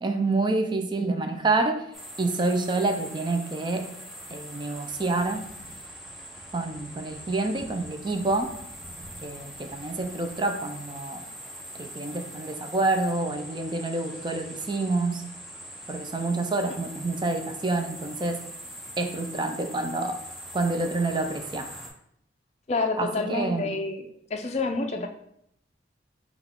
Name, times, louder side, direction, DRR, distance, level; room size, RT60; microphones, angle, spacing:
voice 1, 0.0-1.9 2.2-3.9 4.3-5.4 6.5-8.6 9.2-11.2 11.8-15.3 15.9-18.5 19.0-20.2 20.5-21.7 23.0-23.8, right 2 dB, 25° right, 5 dB, 0.4 m, -28 dB
sound 1, 1.9-21.9, equal, ahead, 0.7 m, -42 dB
voice 2, 22.7-24.0 24.3-25.1, left 3 dB, 35° left, 5 dB, 0.4 m, -28 dB
5.7 x 2.3 x 3.5 m, 0.74 s
head